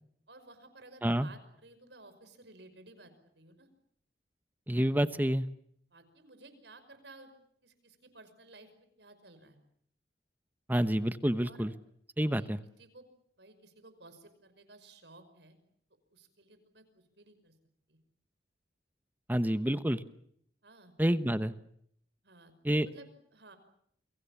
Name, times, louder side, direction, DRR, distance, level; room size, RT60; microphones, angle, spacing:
voice 1, 0.3-3.7 5.9-7.3 7.6-8.7 9.0-9.6 11.4-11.7 12.3-12.5 12.8-13.0 13.4-15.6 16.1-17.5 17.9-18.0 20.6-20.9 22.2-23.6, right 2 dB, 75° right, 10 dB, 5.7 m, -55 dB
voice 2, 4.7-5.5 10.7-11.7 12.2-12.6 19.3-20.0 21.0-21.5 22.6-22.9, equal, 10° right, 12 dB, 1.0 m, -28 dB
29.5 x 23.5 x 7.3 m, 0.68 s
head